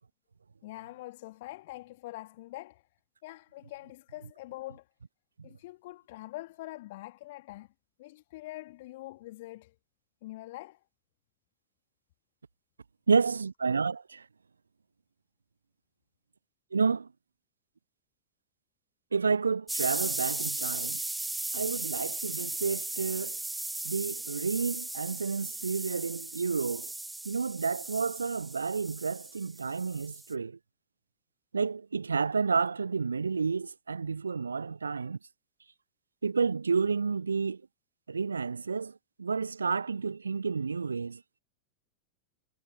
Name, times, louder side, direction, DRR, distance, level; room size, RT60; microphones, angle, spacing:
voice 1, 0.6-2.8 3.2-4.8 5.4-7.7 8.0-9.7 10.2-10.8, left 18 dB, 50° left, 2.4 m, -44 dB
voice 2, 13.1-14.2 16.7-17.1 19.1-21.0 21.5-23.4 23.8-26.9 27.2-30.6 31.5-35.2 36.2-37.6 38.1-41.2, right 5 dB, 75° right, 0.6 m, -30 dB
sound 1, 19.7-30.3, right 2 dB, 5° right, 1.1 m, -37 dB
figure-of-eight pair, 90°, 0 cm